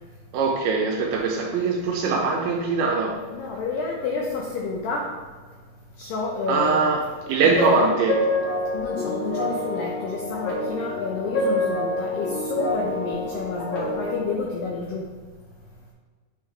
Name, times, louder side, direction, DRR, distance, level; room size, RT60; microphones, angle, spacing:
voice 1, 0.3-3.2 6.5-7.0 7.3-8.1, right 4 dB, 80° right, 0 dB, 2.3 m, -22 dB
voice 2, 3.3-5.1 6.0-7.0 7.4-7.8 8.7-15.1, left 4 dB, 85° left, -1 dB, 2.0 m, -29 dB
sound 1, 7.7-14.2, left 1 dB, 55° left, 1.4 m, -27 dB
8.6 x 3.6 x 3.2 m, 1.5 s
omnidirectional pair, 4.8 m